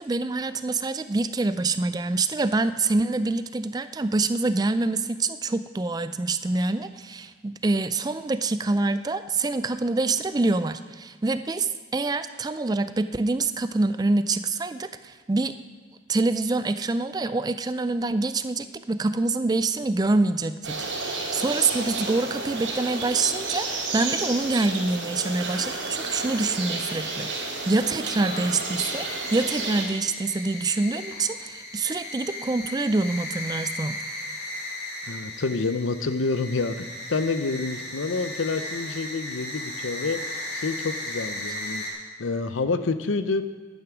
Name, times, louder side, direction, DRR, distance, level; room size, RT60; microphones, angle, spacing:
voice 1, 0.0-15.6 16.1-34.0, right 3 dB, 20° right, 12 dB, 0.3 m, -26 dB
sound 1, 20.6-29.8, right 3 dB, 90° right, 3.9 m, -31 dB
sound 2, 25.9-41.9, left 1 dB, 55° left, 2.6 m, -37 dB
voice 2, 35.1-40.2 40.5-41.8 42.2-43.4, left 3 dB, 85° left, 11 dB, 0.7 m, -28 dB
11.0 x 9.6 x 6.0 m, 1.5 s
head